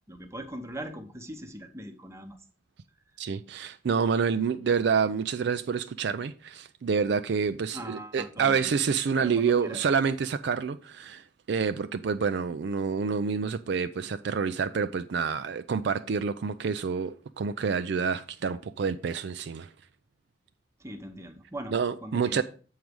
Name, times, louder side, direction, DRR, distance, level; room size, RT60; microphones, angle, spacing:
voice 1, 0.1-2.4 7.7-8.7 9.2-9.8 20.8-22.4, right 1 dB, 15° right, 0.8 m, -40 dB
voice 2, 3.2-19.7 21.7-22.4, right 6 dB, 60° right, 0.4 m, -28 dB
7.5 x 4.7 x 5.2 m
head